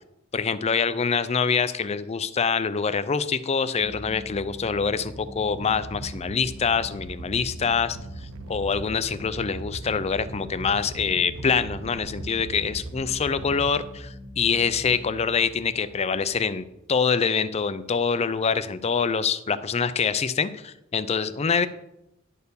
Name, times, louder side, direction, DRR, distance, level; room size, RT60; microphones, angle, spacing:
voice 1, 0.3-8.0 8.5-21.7, left 5 dB, 30° left, 14 dB, 0.4 m, -25 dB
sound 1, 3.8-17.1, left 1 dB, 40° right, 1.8 m, -43 dB
Animal, 5.5-13.7, right 3 dB, 85° right, 0.5 m, -40 dB
11.0 x 4.5 x 6.8 m, 0.85 s
head